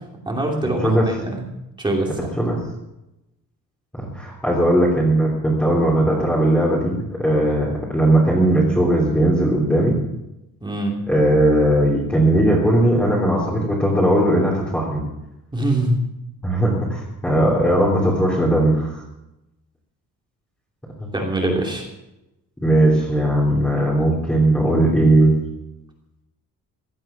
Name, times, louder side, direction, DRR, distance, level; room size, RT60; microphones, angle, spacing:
voice 1, 0.2-1.4 1.8-2.1 10.6-10.9 15.5-16.0 21.1-21.9, right 1 dB, 15° right, 0 dB, 2.8 m, -23 dB
voice 2, 0.8-1.1 2.4-2.6 4.0-10.0 11.1-15.0 16.4-19.0 21.0-21.1 22.6-25.3, right 1 dB, 5° left, -6 dB, 3.4 m, -18 dB
17.0 x 12.5 x 6.0 m, 0.91 s
cardioid pair, 175°, 33 cm